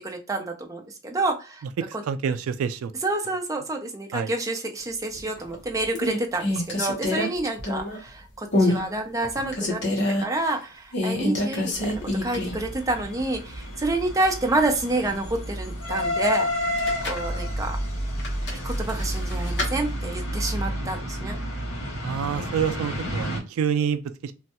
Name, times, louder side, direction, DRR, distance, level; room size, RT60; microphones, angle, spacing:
voice 1, 0.0-1.6 3.0-9.8 10.1-11.7 12.0-17.8 18.6-21.4, right 2 dB, 15° right, 0.5 m, -28 dB
voice 2, 1.9-2.9 4.1-4.3 22.0-24.3, right 7 dB, 85° right, 0.3 m, -27 dB
sound 1, 5.2-5.5 5.9-8.1 8.5-8.8 9.2-10.2 10.9-12.7 13.0-13.1 16.6-17.3 18.2-19.7, left 1 dB, 55° left, 0.9 m, -26 dB
sound 2, 11.7-23.4, equal, 85° left, 1.6 m, -30 dB
3.1 x 2.2 x 2.8 m
head